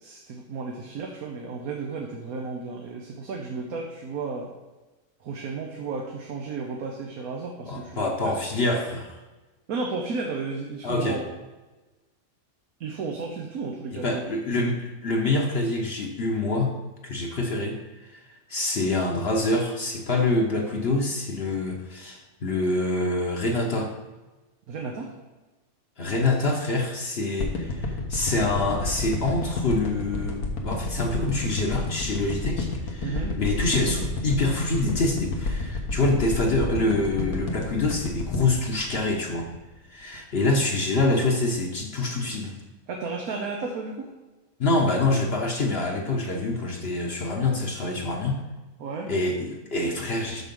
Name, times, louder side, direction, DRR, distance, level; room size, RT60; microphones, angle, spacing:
voice 1, 0.0-4.5 5.2-8.3 9.7-11.2 12.8-14.2 24.7-25.1 33.0-33.3 42.9-44.1 48.8-49.1, right 4 dB, 80° right, 1 dB, 1.4 m, -33 dB
voice 2, 7.7-9.2 10.8-11.2 13.9-16.7 17.0-18.2 18.5-23.9 26.0-39.5 39.9-42.5 44.6-48.4 49.1-50.4, left 2 dB, 50° left, 1 dB, 1.1 m, -26 dB
sound 1, 27.4-39.7 40.1-40.2, left 2 dB, 85° left, 1.6 m, -30 dB
6.5 x 6.3 x 5.3 m, 1.2 s
omnidirectional pair, 1.5 m